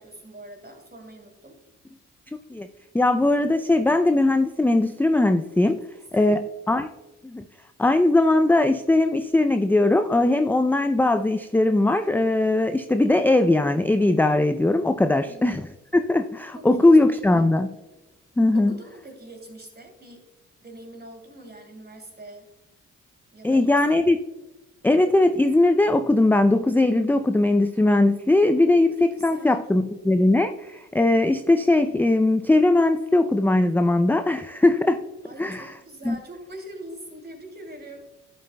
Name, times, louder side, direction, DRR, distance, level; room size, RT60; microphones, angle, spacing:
voice 1, 0.0-1.6 6.1-6.4 15.1-15.4 16.5-16.9 17.2-17.5 18.5-20.2 20.6-22.5 23.3-23.7 28.9-29.0 29.3-29.6 35.2-38.1, right 1 dB, 30° right, 2 dB, 2.6 m, -43 dB
voice 2, 2.9-5.8 6.1-6.9 7.2-7.5 7.8-15.6 15.9-17.7 18.4-18.7 23.4-24.2 24.8-35.0 35.4-35.7 36.0-36.2, left 2 dB, 5° left, 9 dB, 0.4 m, -20 dB
11.0 x 7.9 x 2.2 m, 1.1 s
supercardioid pair, 45°, 33 cm